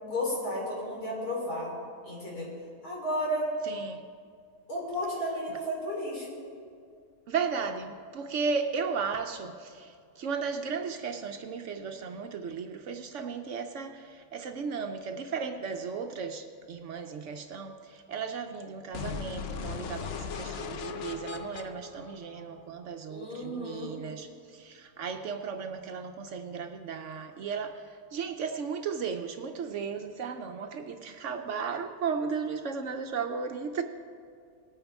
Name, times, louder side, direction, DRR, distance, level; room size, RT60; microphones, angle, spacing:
voice 1, 0.0-1.7 2.0-2.5 2.8-3.5 4.7-6.4 23.1-23.9, equal, 90° left, 4.3 m, -33 dB
voice 2, 3.6-4.0 7.3-33.8, right 5 dB, 65° right, 0.8 m, -35 dB
sound 1, 18.9-22.9, left 6 dB, 65° left, 0.6 m, -38 dB
19.0 x 9.1 x 3.5 m
omnidirectional pair, 1.6 m